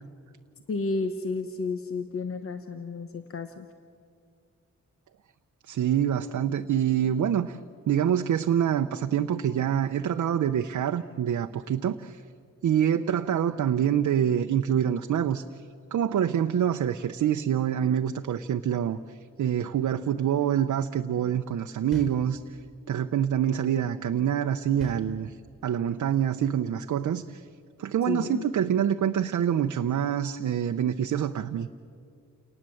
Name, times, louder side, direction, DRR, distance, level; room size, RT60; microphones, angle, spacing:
voice 1, 0.7-3.7 28.1-28.4, left 4 dB, 50° left, 8 dB, 1.1 m, -31 dB
voice 2, 5.7-7.6 7.9-12.2 12.6-15.4 15.9-19.0 19.4-22.4 22.9-25.4 25.6-27.4 27.8-31.7, right 9 dB, 90° right, 6 dB, 0.7 m, -26 dB
sound 1, 21.9-22.8 24.8-25.7, right 1 dB, ahead, 4.6 m, -43 dB
29.0 x 19.0 x 7.7 m, 2.3 s
wide cardioid pair, 120°, 29 cm